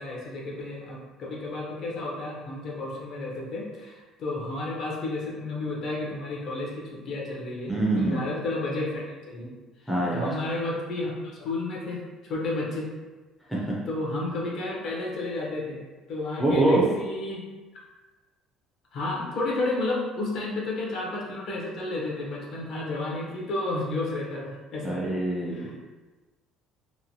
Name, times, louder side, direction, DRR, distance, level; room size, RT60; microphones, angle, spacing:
voice 1, 0.0-9.5 9.8-12.9 13.5-15.8 16.1-17.5 18.9-25.0 25.5-25.8, left 2 dB, 50° left, -3 dB, 0.7 m, -32 dB
voice 2, 7.7-8.2 9.9-10.3 13.5-13.6 16.4-16.8 24.8-25.8, right 2 dB, ahead, -6 dB, 0.5 m, -24 dB
3.0 x 2.2 x 2.6 m, 1.2 s
cardioid pair, 160°, 0 cm